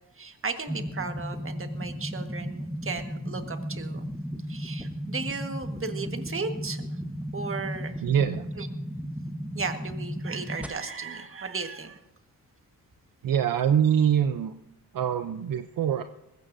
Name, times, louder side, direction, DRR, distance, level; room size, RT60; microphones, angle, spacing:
voice 1, 0.1-4.1 4.5-7.0 7.3-8.0 8.6-8.7 9.5-12.0, right 4 dB, 35° right, 6 dB, 1.6 m, -35 dB
sound 1, 0.7-10.7, equal, 5° right, 1.1 m, -35 dB
voice 2, 8.0-8.5 13.2-14.5 14.9-16.0, right 9 dB, 65° right, 8 dB, 0.7 m, -24 dB
20.0 x 16.0 x 2.7 m, 0.90 s
cardioid pair, 95°, 36 cm